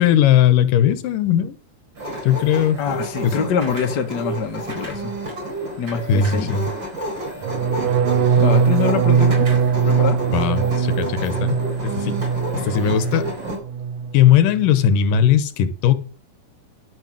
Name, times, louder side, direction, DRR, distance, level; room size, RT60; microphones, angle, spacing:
voice 1, 0.0-1.5 2.2-2.8 3.2-3.4 6.1-6.7 10.3-11.5 11.8-12.2 12.5-13.3 14.1-15.9, left 9 dB, 80° left, 2.7 m, -18 dB
sound 1, 2.0-13.6, right 1 dB, 35° right, 5.0 m, -30 dB
voice 2, 2.8-5.1 5.8-6.5 8.4-9.5 9.8-10.2, left 6 dB, 40° left, 1.8 m, -24 dB
sound 2, 7.4-13.4 13.7-14.2 14.4-14.8, right 7 dB, 85° right, 2.6 m, -20 dB
12.0 x 6.5 x 7.6 m
omnidirectional pair, 3.8 m